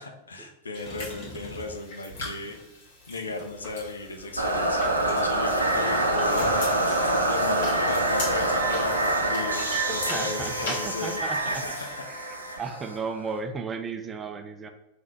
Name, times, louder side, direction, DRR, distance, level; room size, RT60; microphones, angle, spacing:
voice 1, 0.0-2.6 3.1-12.0, left 3 dB, 75° left, 4 dB, 0.6 m, -36 dB
sound 1, 0.7-12.0, left 2 dB, 55° left, 1.5 m, -41 dB
Motor vehicle (road), 0.8-2.0 2.8-4.3 4.6-4.9 5.2-5.3 5.7-6.8 7.8-8.0, left 2 dB, 30° left, 1.3 m, -43 dB
sound 2, 4.4-13.4, right 1 dB, 85° right, 0.6 m, -26 dB
voice 2, 5.7-6.2 9.9-11.6 12.1-14.7, right 4 dB, 20° right, 6 dB, 0.5 m, -35 dB
3.9 x 2.6 x 4.5 m, 0.92 s
figure-of-eight pair, 90°, 0 cm